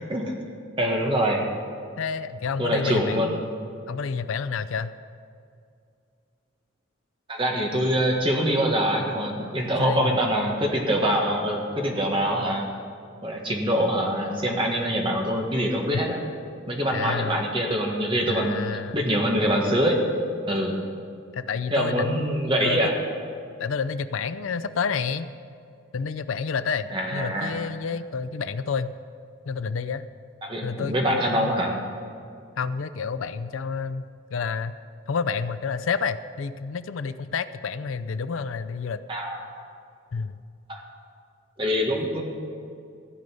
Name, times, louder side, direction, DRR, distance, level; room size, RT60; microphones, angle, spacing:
voice 1, 0.8-1.4 2.6-3.4 7.3-12.7 13.2-16.2 16.7-18.6 18.9-20.0 20.5-20.8 21.7-22.9 26.9-27.5 30.4-31.7 39.1-39.7 40.7-40.8 41.6-42.2, equal, 25° right, 0 dB, 1.6 m, -24 dB
voice 2, 2.0-3.4 3.9-4.9 9.8-10.1 16.9-17.4 18.3-19.0 21.3-22.8 23.6-25.3 25.9-28.9 29.5-30.0 30.6-31.5 32.6-34.7 35.1-39.0 40.1-40.4, left 5 dB, 80° left, 13 dB, 0.5 m, -29 dB
15.5 x 5.3 x 9.3 m, 2.4 s
head